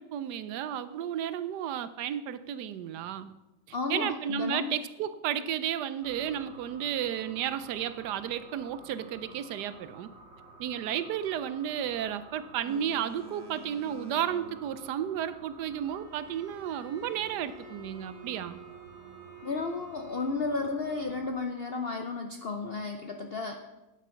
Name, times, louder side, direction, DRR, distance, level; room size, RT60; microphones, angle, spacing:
voice 1, 0.0-3.3 3.9-10.1 10.6-18.6, right 9 dB, 75° right, 14 dB, 1.1 m, -33 dB
voice 2, 3.7-4.7 19.4-23.7, left 3 dB, 75° left, 4 dB, 0.5 m, -33 dB
sound 1, 6.0-21.3, right 3 dB, 40° right, 1.5 m, -52 dB
Boat Water vehicle, 12.7-15.8, right 1 dB, 20° right, 0.9 m, -49 dB
Bowed string instrument, 15.9-20.7, right 4 dB, 5° left, 3.2 m, -51 dB
9.7 x 8.2 x 5.6 m, 1.0 s
omnidirectional pair, 1.9 m